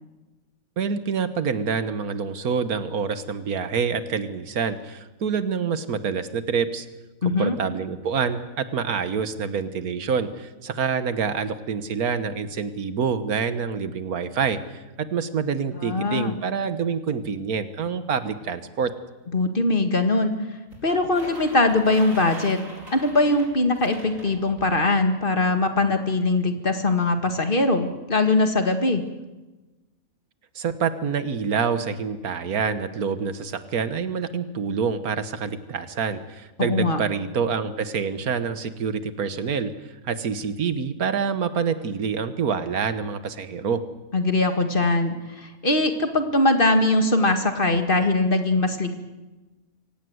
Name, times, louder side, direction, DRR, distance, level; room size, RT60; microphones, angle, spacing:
voice 1, 0.8-6.9 7.4-18.9 30.6-39.7 40.0-43.8, right 6 dB, 85° right, 12 dB, 1.7 m, -27 dB
voice 2, 7.2-7.5 15.8-16.3 19.3-20.3 20.8-22.6 22.9-29.0 36.6-37.0 44.1-49.0, left 2 dB, 35° left, 7 dB, 2.0 m, -21 dB
sound 1, 20.7-24.8, right 1 dB, 65° right, 5.0 m, -42 dB
25.0 x 17.5 x 8.0 m, 1.1 s
omnidirectional pair, 1.5 m